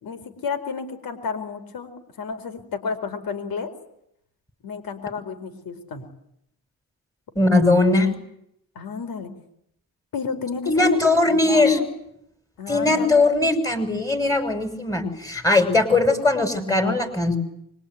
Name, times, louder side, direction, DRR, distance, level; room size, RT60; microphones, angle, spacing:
voice 1, 0.0-3.7 4.6-6.0 8.7-9.3 10.1-11.0 11.3-11.9 12.6-13.3, left 5 dB, 70° left, 7 dB, 4.6 m, -31 dB
voice 2, 7.3-8.1 10.7-11.8 12.7-17.4, left 2 dB, 10° left, 7 dB, 6.4 m, -19 dB
25.5 x 23.5 x 9.5 m, 0.75 s
cardioid pair, 105°, 36 cm